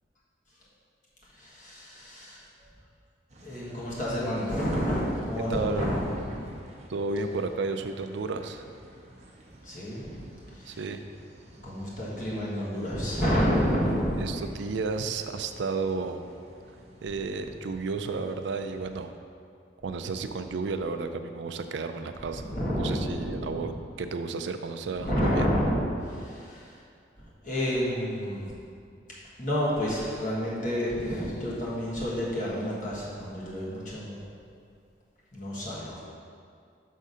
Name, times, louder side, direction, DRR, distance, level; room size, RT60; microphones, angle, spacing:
voice 1, 1.3-2.4 3.4-6.6 9.6-10.3 10.5-10.9 11.6-14.3 22.3-23.8 25.0-26.8 27.2-28.5 29.4-34.2 35.3-36.0, equal, 45° left, -7 dB, 1.5 m, -29 dB
sound 1, 3.3-19.1, right 1 dB, 35° right, 0.7 m, -52 dB
voice 2, 5.5-5.9 6.9-8.6 10.7-11.0 14.2-16.3 17.0-19.1 19.8-22.5 22.8-23.7 24.0-25.5, right 4 dB, 75° right, 8 dB, 0.4 m, -32 dB
6.4 x 3.7 x 5.5 m, 2.4 s
head